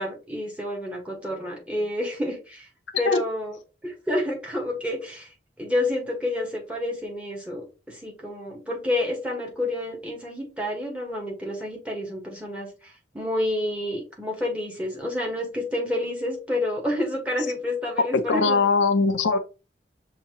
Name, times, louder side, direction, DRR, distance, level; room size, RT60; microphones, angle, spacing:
voice 1, 0.0-2.7 3.0-3.5 3.8-5.3 5.6-12.7 13.1-18.6, left 1 dB, 5° right, 1.3 m, -29 dB
voice 2, 18.1-19.4, left 4 dB, 90° left, 0.5 m, -21 dB
5.7 x 2.8 x 2.9 m
head